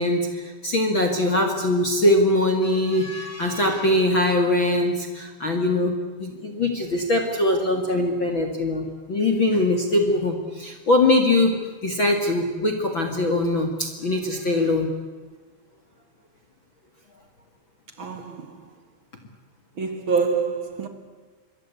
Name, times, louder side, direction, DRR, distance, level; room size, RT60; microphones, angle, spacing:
voice 1, 0.0-14.9, left 1 dB, 40° left, 1.9 m, -22 dB
voice 2, 18.0-18.7 19.8-20.9, right 5 dB, 55° right, 1.3 m, -26 dB
26.5 x 22.5 x 8.4 m
omnidirectional pair, 5.2 m